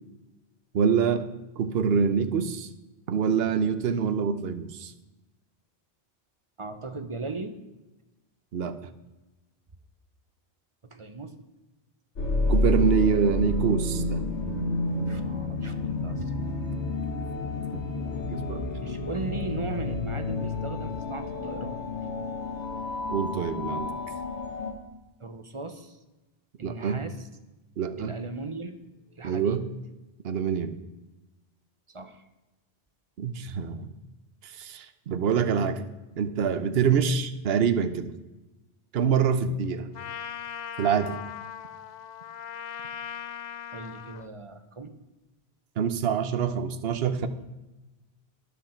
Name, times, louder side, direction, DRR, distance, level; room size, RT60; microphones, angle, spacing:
voice 1, 0.7-1.2 1.6-2.7 3.1-4.9 8.5-8.8 12.5-14.3 15.0-15.1 17.7-18.0 18.3-18.7 23.1-23.9 26.6-27.0 27.8-28.1 29.2-29.7 30.2-30.7 33.2-33.9 34.4-35.8 36.2-38.1 38.9-39.9 40.8-41.2 45.8-47.3, right 6 dB, 65° right, 10 dB, 1.0 m, -25 dB
voice 2, 6.6-7.5 10.9-11.3 14.6-14.7 15.1-16.3 18.8-21.8 25.2-26.0 26.6-27.3 28.0-28.8 29.2-29.6 31.9-32.2 43.7-44.9, right 3 dB, 30° right, 9 dB, 0.9 m, -37 dB
sound 1, 12.1-24.7, left 2 dB, 85° left, 2.0 m, -30 dB
Trumpet, 39.9-44.3, left 9 dB, 55° left, 0.5 m, -39 dB
12.0 x 10.5 x 4.4 m, 1.1 s
omnidirectional pair, 1.1 m